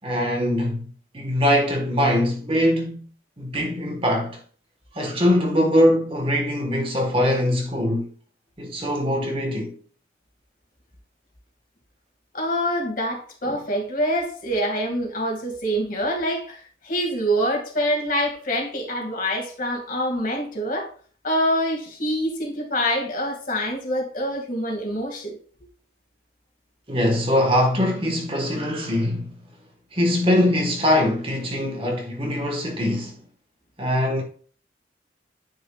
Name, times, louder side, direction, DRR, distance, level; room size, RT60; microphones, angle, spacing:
voice 1, 0.0-0.9 1.1-3.0 3.4-4.4 4.9-8.1 8.6-9.7 26.9-29.3 29.9-33.2 33.8-34.2, left 1 dB, 30° right, 1.5 m, -22 dB
voice 2, 12.3-16.6 16.8-20.9 21.2-25.4, equal, 45° left, 2.2 m, -25 dB
10.0 x 6.2 x 2.4 m
head